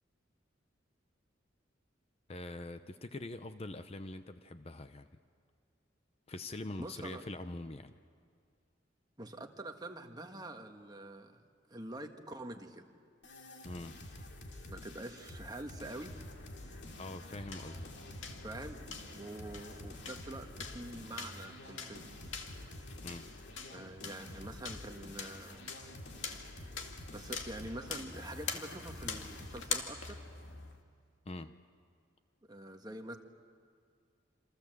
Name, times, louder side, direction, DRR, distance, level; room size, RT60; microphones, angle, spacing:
voice 1, 2.3-5.1 6.3-7.9 13.6-14.0 17.0-17.9 23.0-23.3 31.3-31.5, left 2 dB, 30° left, 10 dB, 0.7 m, -44 dB
voice 2, 6.8-7.2 9.2-11.4 11.7-12.9 14.7-16.1 18.4-18.8 19.1-22.0 22.6-22.9 23.7-25.7 26.2-26.3 27.1-30.2 32.5-33.2, right 1 dB, 20° right, 4 dB, 1.5 m, -46 dB
sound 1, 13.2-29.8, left 1 dB, 65° left, 2.7 m, -50 dB
sound 2, 16.0-30.8, left 5 dB, 80° left, 2.2 m, -45 dB
27.5 x 27.0 x 7.8 m, 2.1 s
head